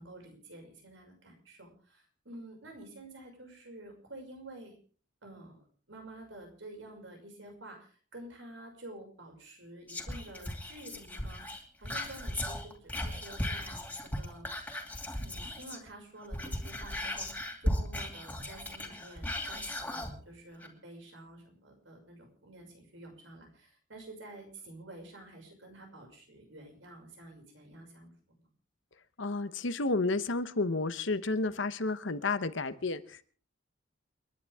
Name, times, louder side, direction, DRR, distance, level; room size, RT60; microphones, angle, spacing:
voice 1, 0.0-4.8 5.2-14.5 15.2-28.1, right 1 dB, 75° right, 6.1 m, -50 dB
Whispering, 9.9-15.9 16.2-20.1 20.6-20.7, left 1 dB, 10° left, 2.6 m, -37 dB
voice 2, 29.2-33.2, left 3 dB, 75° left, 1.0 m, -31 dB
29.5 x 11.0 x 3.6 m
head